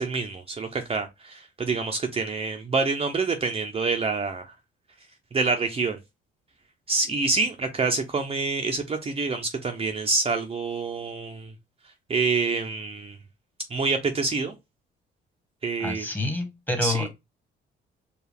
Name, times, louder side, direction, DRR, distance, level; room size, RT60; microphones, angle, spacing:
voice 1, 0.0-4.5 5.3-6.0 6.9-11.5 12.1-13.2 13.7-14.5 15.6-16.1 16.8-17.1, right 4 dB, 30° right, 0.6 m, -27 dB
voice 2, 15.8-17.1, left 2 dB, 10° left, 1.3 m, -28 dB
4.6 x 2.4 x 3.4 m
cardioid pair, 90°, 20 cm